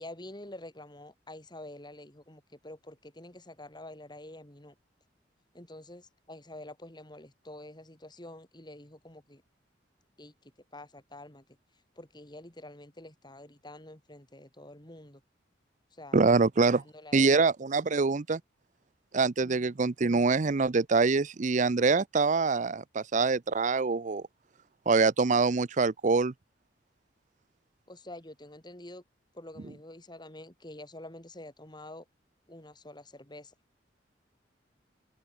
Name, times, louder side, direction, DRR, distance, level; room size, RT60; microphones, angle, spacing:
voice 1, 0.0-4.7 5.5-9.4 10.2-11.4 11.9-15.2 15.9-16.2 16.8-17.4 19.4-19.8 27.9-29.0 29.3-32.0 32.5-33.5, left 1 dB, 25° left, 5.1 m, -47 dB
voice 2, 16.1-16.8 17.1-18.4 19.1-24.2 24.9-26.3, right 4 dB, 45° right, 0.6 m, -25 dB
open air
head